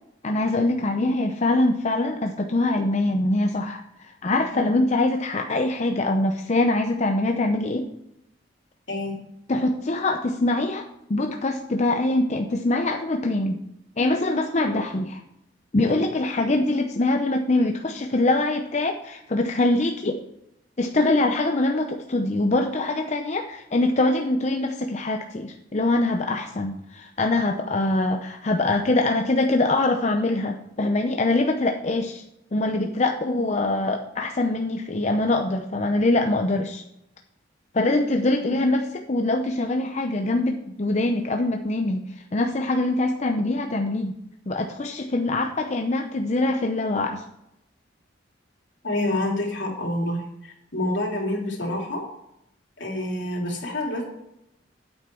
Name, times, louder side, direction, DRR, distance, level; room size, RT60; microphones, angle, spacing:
voice 1, 0.2-7.9 9.5-13.6 14.0-15.2 15.7-20.2 20.8-32.2 32.5-36.8 37.7-44.1 44.5-47.2, left 2 dB, 40° left, 4 dB, 0.6 m, -23 dB
voice 2, 48.8-52.0 52.8-54.0, left 1 dB, 75° left, -1 dB, 3.0 m, -28 dB
9.1 x 8.0 x 4.5 m, 0.82 s
head